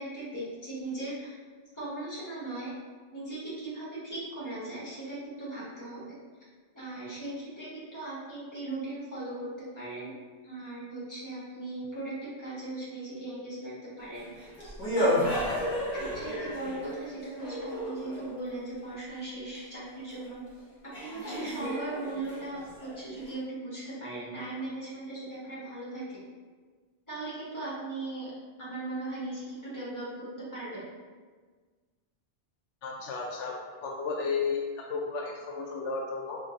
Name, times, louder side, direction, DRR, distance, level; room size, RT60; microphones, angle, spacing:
voice 1, 0.0-1.3 1.7-2.7 3.1-6.1 6.7-10.1 10.4-15.4 15.9-20.4 20.8-22.6 22.9-26.2 27.1-28.3 28.6-30.9, right 2 dB, 15° left, -9 dB, 1.4 m, -38 dB
sound 1, 14.1-18.4 20.2-20.3 20.9-23.4, left 1 dB, 35° left, 1.0 m, -32 dB
voice 2, 32.8-33.5 33.8-34.6 34.9-36.4, left 5 dB, 80° left, -1 dB, 0.9 m, -33 dB
5.1 x 2.7 x 2.5 m, 1.5 s
omnidirectional pair, 1.2 m